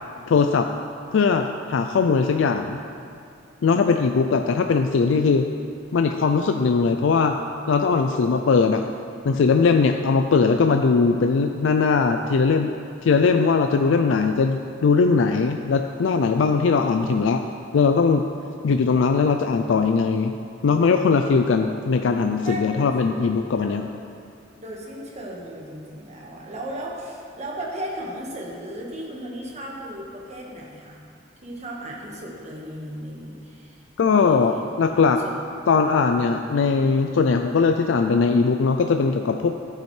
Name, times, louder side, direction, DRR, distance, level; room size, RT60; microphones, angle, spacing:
voice 1, 0.3-0.7 1.1-2.8 3.6-5.5 5.9-7.4 7.7-8.8 9.2-12.7 13.0-17.4 17.7-18.3 18.6-20.3 20.6-23.8 34.0-35.2 35.7-39.5, left 4 dB, 90° left, 5 dB, 0.4 m, -20 dB
voice 2, 22.4-23.3 23.6-23.8 24.6-31.0 31.4-33.8 34.2-34.6 35.0-35.6, right 1 dB, 35° right, -2 dB, 1.4 m, -36 dB
12.0 x 8.6 x 3.3 m, 2.4 s
head